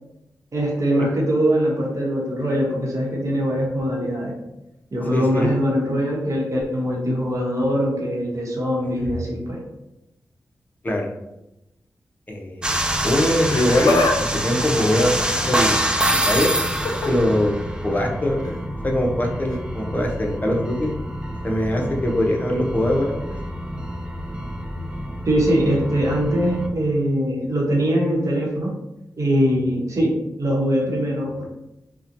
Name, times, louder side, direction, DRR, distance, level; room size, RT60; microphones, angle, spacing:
voice 1, 0.5-4.3 4.9-9.6 25.2-28.7 29.2-31.5, equal, 55° right, -2 dB, 0.9 m, -22 dB
voice 2, 5.1-5.6 10.8-11.1 12.3-12.8 13.0-15.8 16.1-16.5 16.8-18.5 18.8-21.1 21.4-23.2, left 1 dB, 25° left, 0 dB, 0.6 m, -22 dB
sound 1, 12.6-26.7, right 1 dB, 15° right, 0.3 m, -26 dB
Laughter, 13.3-14.2 14.5-15.8 16.7-17.1 18.4-18.6 19.5-19.6, left 3 dB, 90° left, 0.4 m, -24 dB
2.8 x 2.1 x 2.5 m, 0.90 s
cardioid pair, 65°, 6 cm